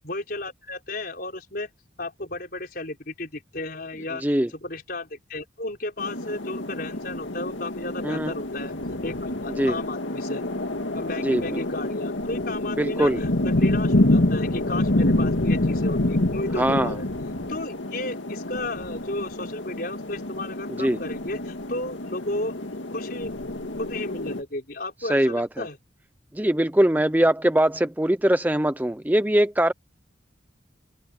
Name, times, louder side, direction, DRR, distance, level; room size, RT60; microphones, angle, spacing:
voice 1, 0.0-1.7 2.0-4.2 4.5-8.7 9.0-10.4 10.9-17.1 17.5-22.5 22.9-23.3 23.8-25.8, left 2 dB, 50° left, 5.0 m, -34 dB
sound 1, 6.0-24.4, left 1 dB, 75° left, 2.0 m, -27 dB
voice 2, 11.2-11.6 12.8-13.2 16.6-16.9 20.8-21.0 25.1-25.6 26.3-29.7, right 1 dB, 10° right, 0.5 m, -22 dB
open air
head